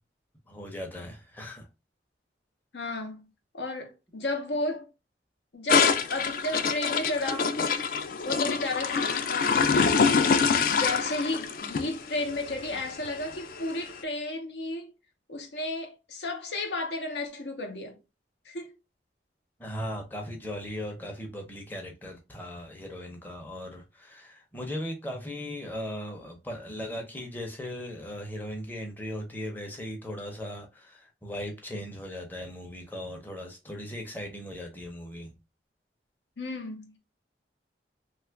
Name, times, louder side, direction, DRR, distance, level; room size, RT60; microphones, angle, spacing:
voice 1, 0.5-1.7 19.6-35.4, equal, 10° left, 0.6 m, -38 dB
voice 2, 2.7-3.3 3.5-4.9 5.5-7.5 8.2-10.2 10.7-14.9 15.3-18.0 18.4-18.8 36.4-37.0, left 2 dB, 80° left, 0.8 m, -33 dB
sound 1, 5.7-13.9, left 5 dB, 50° left, 0.3 m, -26 dB
2.9 x 2.4 x 3.3 m
head